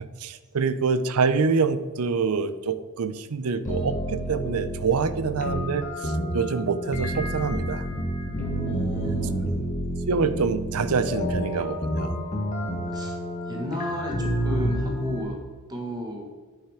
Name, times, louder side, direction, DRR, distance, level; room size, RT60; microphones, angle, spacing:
voice 1, 0.0-7.9 10.1-12.1, right 5 dB, 80° right, 13 dB, 0.6 m, -26 dB
sound 1, 3.7-15.2, equal, 35° left, 1.4 m, -29 dB
voice 2, 8.6-9.5 12.9-13.2 13.4-15.4 15.7-16.3, equal, 20° right, 0 dB, 1.6 m, -33 dB
9.4 x 5.7 x 4.9 m, 1.4 s
head